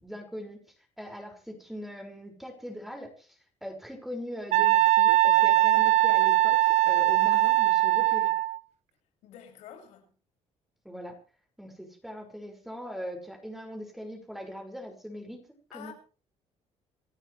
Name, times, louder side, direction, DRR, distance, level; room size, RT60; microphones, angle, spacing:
voice 1, 0.0-0.6 1.0-8.4 10.8-11.2 11.6-15.4 15.7-15.9, equal, ahead, 6.0 m, -41 dB
Wind instrument woodwind instrument, 4.5-8.6, right 15 dB, 70° right, 1.0 m, -21 dB
voice 2, 9.2-10.1 15.7-15.9, left 10 dB, 85° left, 7.2 m, -47 dB
27.5 x 13.5 x 3.4 m
cardioid pair, 110°, 12 cm